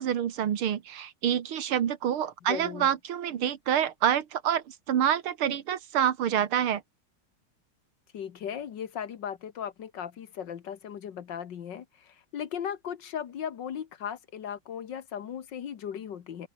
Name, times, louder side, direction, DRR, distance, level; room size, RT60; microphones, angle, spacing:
voice 1, 0.0-6.8, right 9 dB, 80° right, 2.3 m, -27 dB
voice 2, 2.5-2.9 8.1-16.5, left 8 dB, 60° left, 1.8 m, -37 dB
open air
omnidirectional pair, 2.3 m